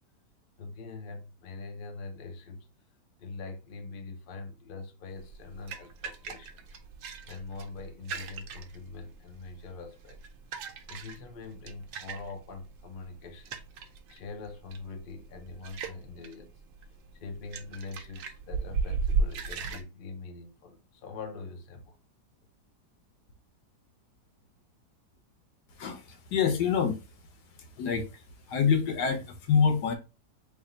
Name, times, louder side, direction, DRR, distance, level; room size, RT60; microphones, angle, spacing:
voice 1, 0.6-2.7 3.2-6.7 7.2-10.2 10.9-13.6 14.1-16.5 16.9-22.0, left 3 dB, 55° left, 0.6 m, -43 dB
sound 1, 5.1-19.8, right 4 dB, 70° right, 0.8 m, -37 dB
voice 2, 25.8-27.1 27.5-29.9, left 6 dB, 80° left, 1.4 m, -27 dB
3.4 x 2.7 x 3.8 m
omnidirectional pair, 1.8 m